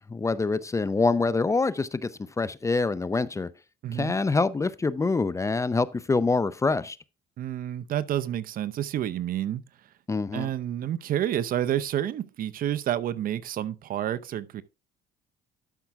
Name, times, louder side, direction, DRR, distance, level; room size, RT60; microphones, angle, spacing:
voice 1, 0.1-2.1 2.4-3.5 3.9-7.0 10.1-10.5, left 3 dB, 15° left, 0.5 m, -25 dB
voice 2, 3.8-4.1 7.4-9.6 10.3-14.6, right 11 dB, 55° right, 0.7 m, -29 dB
12.0 x 6.0 x 3.4 m
cardioid pair, 110°, 17 cm